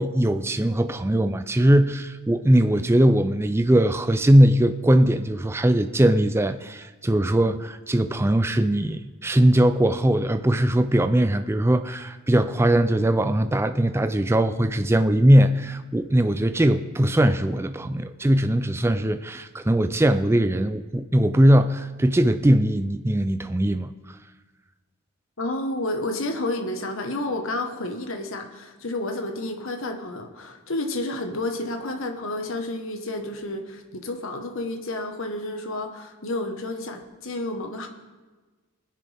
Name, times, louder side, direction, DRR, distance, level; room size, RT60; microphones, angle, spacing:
voice 1, 0.0-23.9, right 1 dB, 10° right, 10 dB, 0.3 m, -20 dB
voice 2, 25.4-37.9, left 2 dB, 60° left, 5 dB, 1.3 m, -30 dB
20.5 x 10.5 x 3.5 m, 1.3 s
head